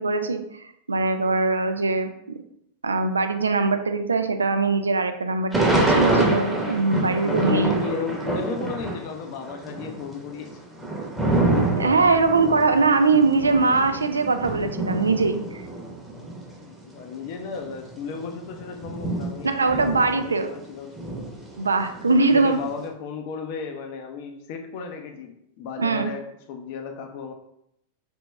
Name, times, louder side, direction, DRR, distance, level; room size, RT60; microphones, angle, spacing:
voice 1, 0.0-2.1 2.8-7.8 11.7-15.6 19.4-20.5 21.6-22.6 25.8-26.1, right 3 dB, 75° right, 8 dB, 0.3 m, -22 dB
Thunder / Rain, 5.5-9.1 9.4-16.5 17.1-17.2 17.4-20.6 20.9-22.7, right 2 dB, 5° right, 0.9 m, -26 dB
voice 2, 7.2-10.6 16.6-21.2 22.1-26.2 26.5-27.3, left 5 dB, 45° left, 4 dB, 0.6 m, -34 dB
3.4 x 2.9 x 3.2 m, 0.76 s
figure-of-eight pair, 90°, 0 cm